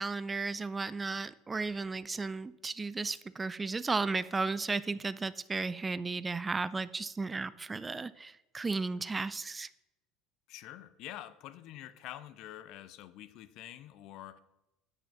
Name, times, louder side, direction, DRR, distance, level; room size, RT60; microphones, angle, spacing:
voice 1, 0.0-9.7, right 3 dB, 20° right, 17 dB, 0.4 m, -34 dB
voice 2, 10.5-14.4, left 13 dB, 50° left, 14 dB, 0.6 m, -47 dB
8.0 x 6.3 x 7.1 m, 0.94 s
figure-of-eight pair, 65°, 0 cm